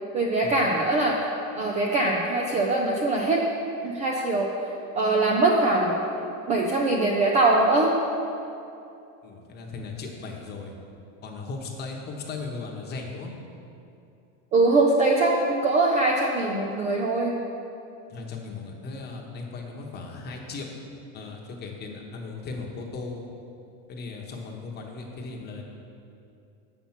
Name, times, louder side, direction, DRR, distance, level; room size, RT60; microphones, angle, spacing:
voice 1, 0.1-1.2 1.6-3.4 3.8-4.5 4.9-5.9 6.5-8.0 14.5-17.3, right 2 dB, 20° right, -1 dB, 0.3 m, -22 dB
voice 2, 9.2-10.7 11.2-13.3 18.1-20.7 21.1-23.2 23.9-25.6, left 4 dB, 25° left, 0 dB, 1.0 m, -37 dB
7.1 x 5.9 x 7.2 m, 2.7 s
supercardioid pair, 160°, 39 cm